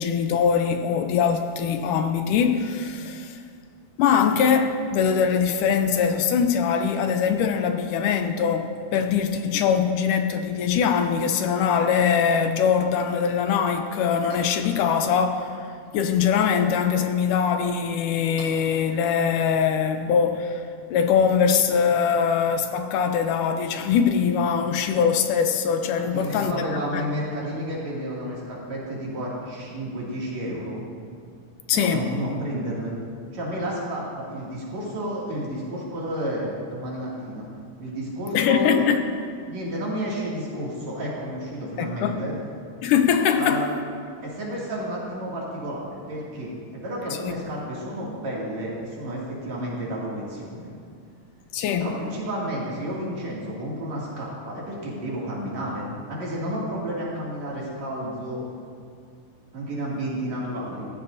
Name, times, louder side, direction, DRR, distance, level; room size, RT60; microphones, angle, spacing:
voice 1, 0.0-3.4 4.0-15.7 15.9-27.0 31.7-32.0 38.3-39.0 41.8-42.2 42.8-43.6 47.2-47.3 51.5-51.9, left 7 dB, 80° left, 2.2 m, -22 dB
sound 1, 14.3-15.3 15.5-15.9 16.4-16.5 17.2-17.3 17.9-18.0 18.4-19.9, right 2 dB, 80° right, 4.3 m, -48 dB
voice 2, 26.0-30.8 31.7-32.9 33.3-37.5 37.8-38.8 39.5-42.3 43.4-43.7 44.2-50.7 51.8-58.4 59.5-60.9, equal, 55° right, 3.6 m, -31 dB
16.5 x 14.0 x 2.7 m
omnidirectional pair, 3.8 m